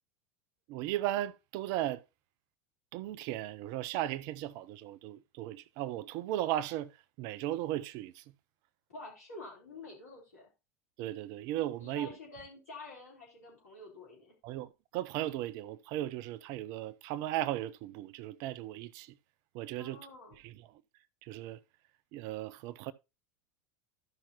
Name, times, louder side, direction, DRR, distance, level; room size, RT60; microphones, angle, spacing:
voice 1, 0.7-2.0 2.9-6.9 7.2-8.2 11.0-12.1 14.4-19.1 19.5-20.0 20.4-20.6 21.2-21.6 22.1-22.9, right 13 dB, 45° right, 0.5 m, -36 dB
voice 2, 8.9-10.5 11.7-14.3 19.8-20.4, left 2 dB, 75° left, 3.7 m, -48 dB
13.5 x 5.7 x 2.9 m
figure-of-eight pair, 80°, 8 cm